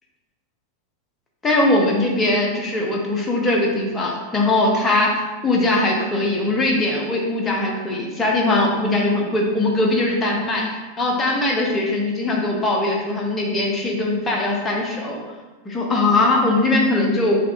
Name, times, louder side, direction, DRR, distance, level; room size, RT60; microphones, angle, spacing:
voice 1, 1.4-5.1 5.4-10.7 11.0-15.2 15.6-17.4, left 2 dB, 15° left, -1 dB, 0.8 m, -20 dB
5.2 x 2.4 x 3.0 m, 1.2 s
figure-of-eight pair, 90°, 0 cm